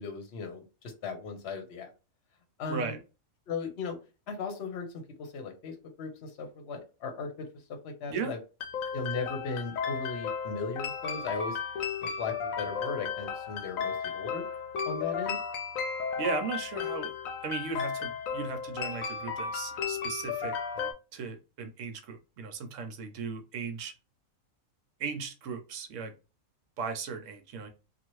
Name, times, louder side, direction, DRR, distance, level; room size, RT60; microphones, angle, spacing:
voice 1, 0.0-1.9 2.6-3.0 3.5-4.0 4.3-8.4 8.9-11.6 12.0-14.4 14.8-15.4, left 4 dB, 55° left, 4 dB, 1.0 m, -37 dB
sound 1, 8.6-20.9, left 6 dB, 80° left, 1.0 m, -34 dB
voice 2, 16.2-17.1 17.4-23.9 25.0-26.1 26.8-27.7, right 5 dB, 70° right, 7 dB, 1.0 m, -36 dB
2.8 x 2.4 x 3.0 m, 0.30 s
omnidirectional pair, 1.4 m